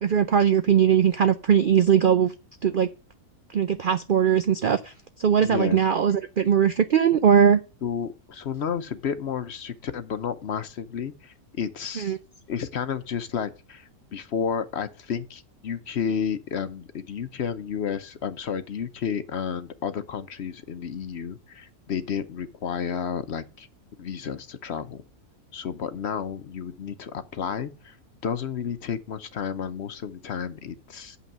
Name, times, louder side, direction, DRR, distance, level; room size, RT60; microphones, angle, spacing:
voice 1, 0.0-2.3 2.6-2.9 3.5-7.6 12.0-12.2, right 8 dB, 85° right, 0.4 m, -20 dB
voice 2, 5.4-5.8 7.8-12.2 12.5-23.7 24.0-25.0 25.5-28.0 28.2-31.2, left 7 dB, 55° left, 0.8 m, -31 dB
7.0 x 5.6 x 7.3 m
omnidirectional pair, 1.6 m